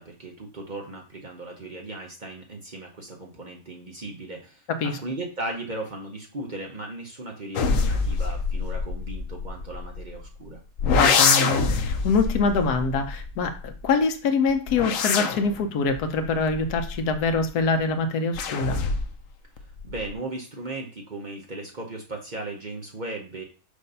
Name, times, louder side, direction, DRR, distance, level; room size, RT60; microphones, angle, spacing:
voice 1, 0.0-10.6 19.6-23.4, right 2 dB, 40° right, 1 dB, 0.8 m, -37 dB
sound 1, 7.6-10.3 10.8-13.9 14.5-17.5 18.3-19.3 19.6-20.1, left 5 dB, 65° left, 1.0 m, -25 dB
voice 2, 11.0-18.8, left 4 dB, 90° left, 7 dB, 1.3 m, -24 dB
6.6 x 2.6 x 5.4 m, 0.36 s
omnidirectional pair, 1.6 m